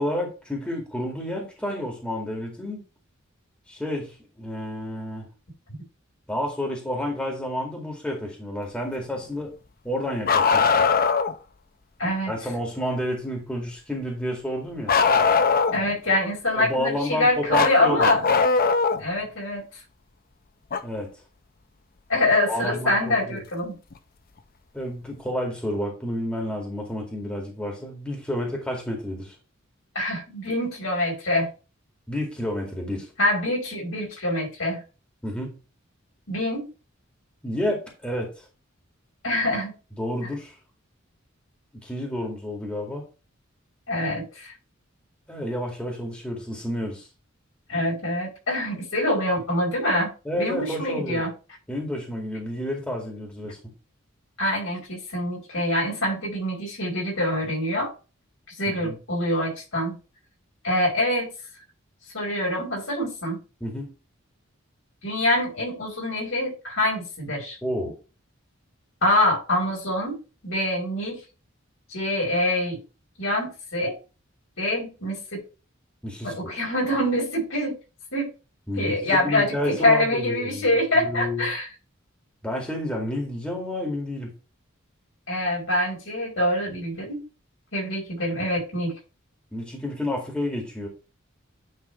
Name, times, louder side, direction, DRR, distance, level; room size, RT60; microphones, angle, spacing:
voice 1, 0.0-2.8 3.7-5.3 6.3-9.5 9.8-10.7 12.3-15.0 16.6-18.1 20.8-21.1 22.5-23.4 24.7-29.4 32.1-33.1 35.2-35.6 37.4-38.3 40.0-40.6 41.7-43.0 45.3-47.1 50.3-51.2 51.7-53.6 58.7-59.0 63.6-63.9 67.6-67.9 76.0-76.4 78.7-81.5 82.4-84.3 89.5-90.9, left 1 dB, 5° left, 2.0 m, -30 dB
Bark, 10.2-11.3 14.9-15.9 17.5-19.0 20.7-20.8 22.7-22.8 23.9-24.0, left 5 dB, 45° left, 0.7 m, -20 dB
voice 2, 12.0-12.3 15.7-18.3 19.0-19.6 22.1-23.8 29.9-31.5 33.2-34.8 36.3-36.7 39.2-39.7 43.9-44.5 47.7-51.3 54.4-57.9 58.6-59.9 60.6-61.3 62.1-63.4 65.0-67.6 69.0-71.2 71.9-72.8 73.2-74.0 74.6-75.4 76.2-77.8 78.1-78.3 78.8-81.7 85.3-87.2 87.7-88.9, left 1 dB, 75° left, 4.8 m, -25 dB
9.8 x 3.6 x 4.4 m
head